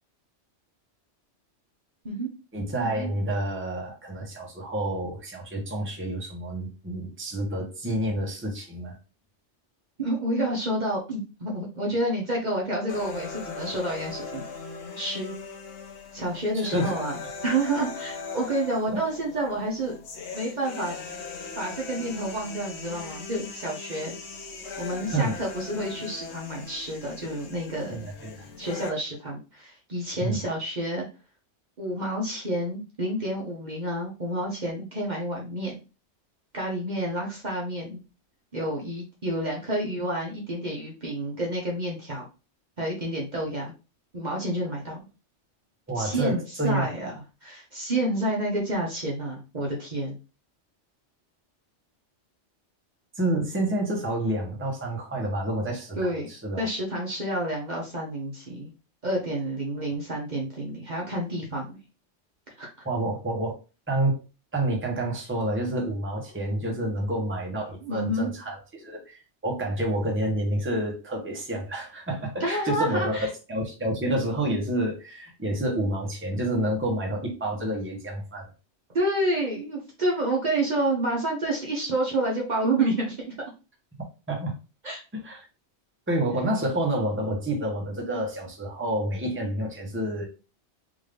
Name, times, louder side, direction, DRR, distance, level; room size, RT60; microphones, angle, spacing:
voice 1, 2.5-9.0 16.5-16.9 25.1-25.3 27.9-28.4 30.2-30.4 45.9-46.9 53.2-56.7 62.8-63.5 63.9-64.2 64.5-78.5 84.3-84.5 85.2-85.4 86.1-90.2, right 1 dB, 10° right, 0.9 m, -29 dB
voice 2, 10.0-14.4 15.0-15.3 16.1-17.1 17.4-20.0 20.3-21.2 21.6-24.2 24.8-28.1 28.6-31.1 31.8-35.8 36.5-38.0 38.5-42.3 42.8-43.7 44.1-45.1 46.0-50.1 56.0-58.7 59.0-61.8 62.6-62.7 67.8-68.3 72.4-73.3 78.9-83.3 84.8-85.0, right 1 dB, 40° right, 1.0 m, -29 dB
sound 1, 12.9-28.9, left 4 dB, 70° left, 1.1 m, -39 dB
3.7 x 2.6 x 3.3 m
omnidirectional pair, 1.2 m